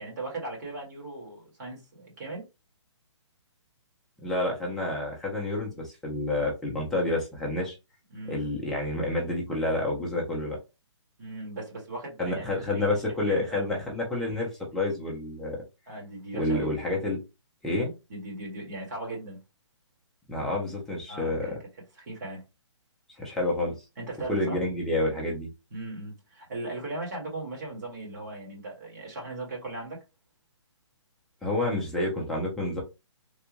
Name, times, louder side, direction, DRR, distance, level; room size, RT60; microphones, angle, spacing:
voice 1, 0.0-2.5 8.1-8.4 11.2-12.8 13.3-13.7 15.9-16.7 18.1-19.4 21.1-21.6 22.0-22.4 24.0-24.6 25.7-30.0, right 2 dB, 35° right, 1.8 m, -38 dB
voice 2, 4.2-7.7 8.3-10.6 12.2-15.6 16.3-17.2 17.6-17.9 20.3-21.6 23.2-23.7 24.3-25.5 31.4-32.8, left 2 dB, ahead, 0.6 m, -29 dB
3.5 x 2.4 x 3.0 m
hypercardioid pair, 165°, 16 cm